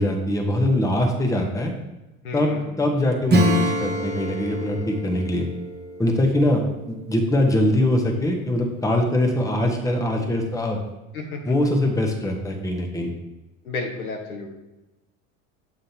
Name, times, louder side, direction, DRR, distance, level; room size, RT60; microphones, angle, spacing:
voice 1, 0.0-1.7 2.3-5.5 6.0-10.8 11.5-13.1, left 1 dB, 10° left, 2 dB, 1.1 m, -22 dB
voice 2, 2.2-2.8 11.1-11.5 13.6-14.5, left 3 dB, 80° left, 2 dB, 1.3 m, -32 dB
Acoustic guitar / Strum, 3.3-7.6, equal, 25° right, 1.2 m, -26 dB
7.7 x 5.1 x 2.8 m, 1.0 s
hypercardioid pair, 80°, 43 cm